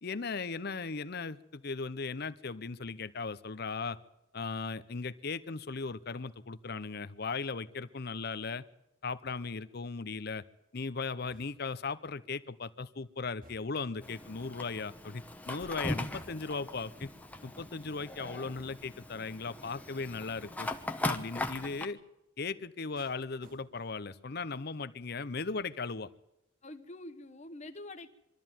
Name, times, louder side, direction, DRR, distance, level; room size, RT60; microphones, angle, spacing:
voice 1, 0.0-4.0 4.3-8.6 9.0-10.4 10.7-17.1 17.4-20.7 21.0-22.0 22.4-26.1, left 4 dB, 55° left, 14 dB, 0.8 m, -37 dB
sound 1, 11.3-11.9 13.4-14.0 16.1-16.7 18.6-19.1 20.4-20.8 23.0-24.1 24.5-24.8, right 1 dB, 50° right, 1.6 m, -60 dB
Fire, 14.0-21.9, left 2 dB, 10° left, 1.1 m, -39 dB
voice 2, 26.6-28.1, left 2 dB, 35° left, 8 dB, 1.3 m, -46 dB
23.5 x 13.0 x 9.1 m, 0.89 s
head